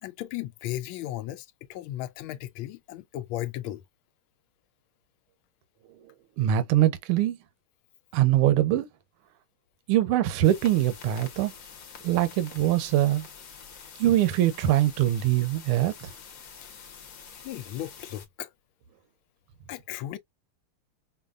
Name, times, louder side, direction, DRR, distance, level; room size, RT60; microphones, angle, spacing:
voice 1, 0.0-3.8 16.6-16.7 17.4-18.5 19.7-20.2, left 14 dB, 75° left, 1.3 m, -36 dB
voice 2, 6.4-7.4 8.1-8.9 9.9-11.5 12.0-13.3 14.0-16.1, right 13 dB, 80° right, 1.6 m, -23 dB
sound 1, 10.4-18.3, left 6 dB, 55° left, 1.0 m, -47 dB
5.2 x 2.3 x 2.4 m
omnidirectional pair, 2.4 m